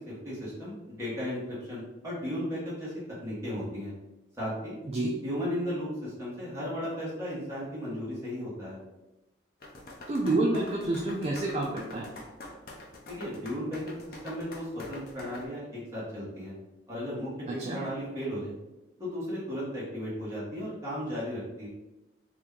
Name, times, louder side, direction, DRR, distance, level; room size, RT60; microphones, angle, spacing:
voice 1, 0.1-2.9 3.2-3.9 4.4-4.7 5.2-8.8 13.1-16.5 16.9-18.5 19.0-21.7, equal, 15° right, -8 dB, 1.3 m, -35 dB
voice 2, 4.8-5.2 10.1-12.1 17.5-17.8, right 2 dB, 35° right, -1 dB, 0.3 m, -28 dB
sound 1, 9.6-15.4, left 2 dB, 50° left, 0.6 m, -45 dB
2.9 x 2.6 x 3.6 m, 1.0 s
head